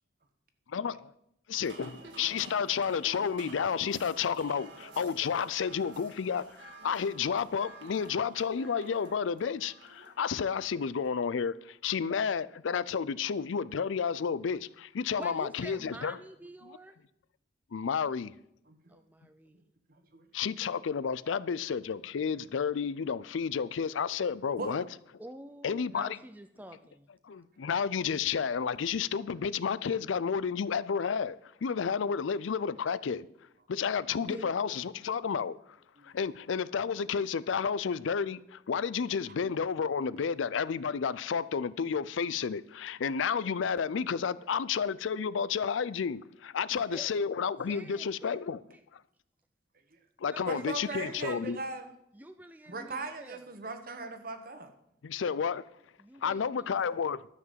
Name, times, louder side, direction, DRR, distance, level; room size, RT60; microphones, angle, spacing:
voice 1, 1.5-16.2 16.6-16.8 17.7-18.3 20.3-24.8 25.6-26.2 27.2-33.3 33.7-35.6 36.0-48.6 50.2-51.6 55.0-55.6 56.2-57.2, left 6 dB, 85° left, 0.4 m, -31 dB
sound 1, 1.5-11.1, right 3 dB, 75° right, 1.9 m, -51 dB
voice 2, 15.2-17.0 18.9-19.6 25.2-27.1 34.3-34.5 46.7-47.1 47.7-48.4 48.7-48.8 50.3-51.6 52.1-53.5 56.0-57.1, right 1 dB, 10° right, 0.4 m, -47 dB
voice 3, 18.7-19.0 19.9-20.3 24.6-24.7 27.3-27.4 36.0-36.1 49.9-50.0 50.4-51.9 52.6-54.7, right 3 dB, 50° right, 1.4 m, -39 dB
12.5 x 6.0 x 7.4 m
head